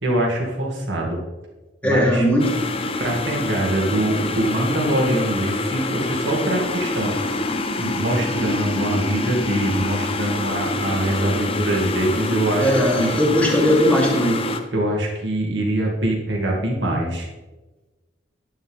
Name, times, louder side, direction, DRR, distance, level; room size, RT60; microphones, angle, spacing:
voice 1, 0.0-1.2 1.8-2.2 3.0-7.2 7.8-12.7 13.0-13.2 14.7-17.3, right 1 dB, 70° right, -1 dB, 2.5 m, -23 dB
voice 2, 1.8-2.6 12.6-14.4, equal, 5° left, -3 dB, 2.4 m, -18 dB
sound 1, 2.4-14.6, left 2 dB, 30° left, 0.8 m, -26 dB
10.5 x 9.5 x 3.6 m, 1.2 s
head